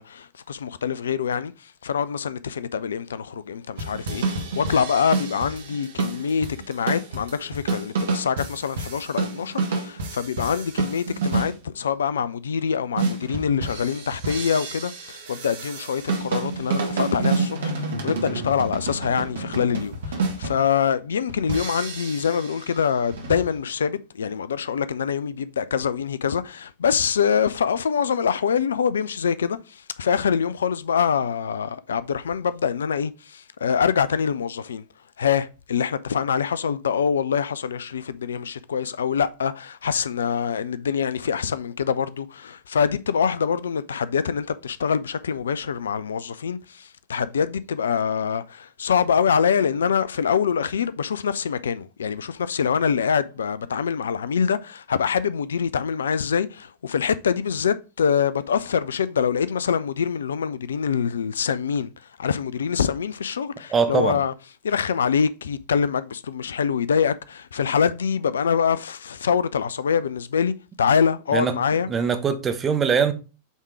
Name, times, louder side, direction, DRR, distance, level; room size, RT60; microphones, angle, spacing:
voice 1, 0.0-1.5 1.8-34.8 35.2-61.9 62.2-64.3 64.6-71.9, left 7 dB, 65° left, 0.4 m, -25 dB
sound 1, 3.8-11.5 13.0-20.6 21.3-22.7 23.1-23.5, right 3 dB, 60° right, 1.6 m, -29 dB
voice 2, 63.7-64.2 71.3-71.5 71.9-73.1, right 6 dB, 20° right, 1.1 m, -22 dB
8.1 x 3.6 x 4.6 m
figure-of-eight pair, 90°, 0 cm